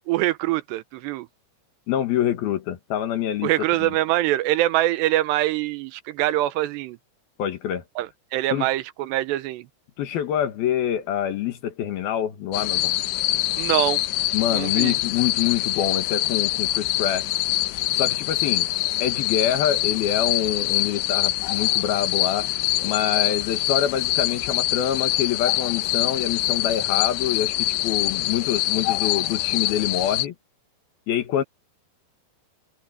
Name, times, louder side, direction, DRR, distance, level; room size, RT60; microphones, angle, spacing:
voice 1, 0.1-1.3 3.4-7.0 8.0-9.7 13.6-14.0 14.5-15.0, right 15 dB, 85° right, 3.0 m, -24 dB
voice 2, 1.9-3.5 3.8-3.9 7.4-7.8 8.5-8.7 10.0-12.9 14.3-17.3 18.0-18.7 19.0-22.5 22.8-30.3 31.1-31.4, left 10 dB, 65° left, 3.2 m, -26 dB
sound 1, 12.5-30.3, left 16 dB, 85° left, 3.0 m, -24 dB
omnidirectional pair, 4.9 m